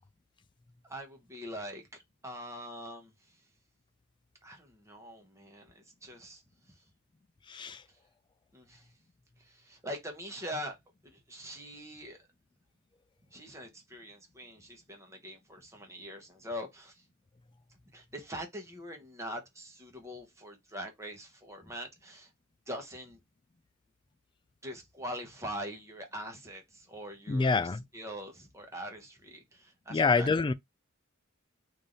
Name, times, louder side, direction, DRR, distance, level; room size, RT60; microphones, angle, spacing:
voice 1, 0.8-3.3 4.4-6.4 6.7-6.8 7.9-8.0 8.5-8.9 9.4-10.8 11.0-12.3 13.3-17.0 17.9-22.3 22.7-23.2 24.6-30.3, equal, 15° right, 1.0 m, -43 dB
voice 2, 27.3-27.8 29.9-30.5, left 4 dB, 25° left, 0.3 m, -26 dB
3.3 x 2.7 x 3.8 m
head